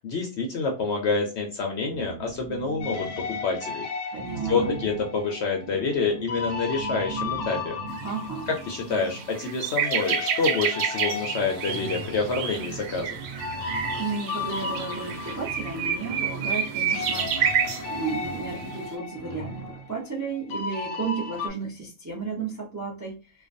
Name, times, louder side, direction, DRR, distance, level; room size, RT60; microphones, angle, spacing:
voice 1, 0.0-3.9 4.5-7.8 8.7-13.2, left 4 dB, 65° left, 1 dB, 0.7 m, -27 dB
sound 1, 1.9-3.7 4.1-9.8 10.7-10.8 11.1-20.0, right 5 dB, 65° right, 0.9 m, -39 dB
sound 2, 2.8-9.6 9.8-16.7 16.9-21.5, left 4 dB, 85° left, 1.1 m, -35 dB
voice 2, 4.1-4.8 8.0-8.5 14.0-17.4 17.9-23.2, right 4 dB, 25° right, -3 dB, 0.3 m, -33 dB
sound 3, 8.0-8.1 8.6-8.7 9.0-17.8 18.6-18.8, right 8 dB, 90° right, 1.1 m, -29 dB
2.4 x 2.2 x 2.5 m, 0.34 s
omnidirectional pair, 1.5 m